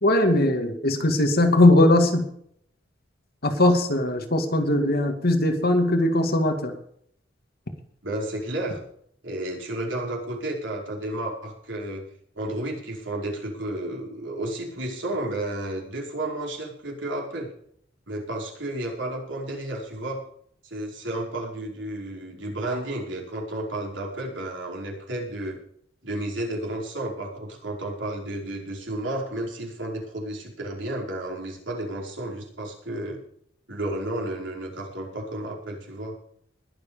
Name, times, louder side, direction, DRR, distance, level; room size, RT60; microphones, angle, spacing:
voice 1, 0.0-2.3 3.4-6.7, left 1 dB, 55° left, 5 dB, 2.2 m, -20 dB
voice 2, 8.0-8.8 9.2-12.0 12.3-17.5 18.1-20.2 20.6-25.6 26.0-33.2 33.7-36.1, right 1 dB, 70° right, -2 dB, 5.1 m, -32 dB
21.0 x 7.4 x 5.2 m, 0.66 s
head